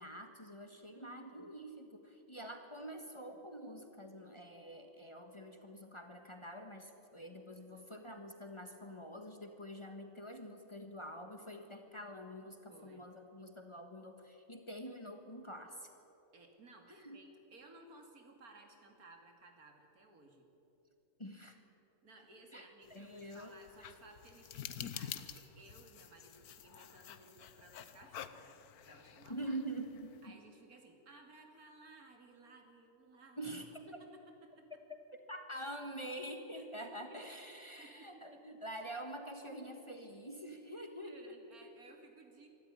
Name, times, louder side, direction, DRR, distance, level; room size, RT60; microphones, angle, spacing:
voice 1, 0.0-15.9 17.0-17.2 21.2-21.6 22.5-22.6 22.9-23.5 29.3-30.4 33.4-33.7 35.3-41.4, right 1 dB, 20° left, 5 dB, 1.5 m, -46 dB
voice 2, 0.9-1.4 7.6-7.9 12.7-13.1 16.3-20.5 22.0-29.6 30.2-33.5 33.9-34.7 36.5-37.2 37.8-38.2 41.0-42.5, right 2 dB, 75° right, 3 dB, 3.0 m, -59 dB
sound 1, 22.8-30.3, left 9 dB, 85° left, 1.4 m, -49 dB
25.0 x 13.0 x 9.8 m, 3.0 s
omnidirectional pair, 1.6 m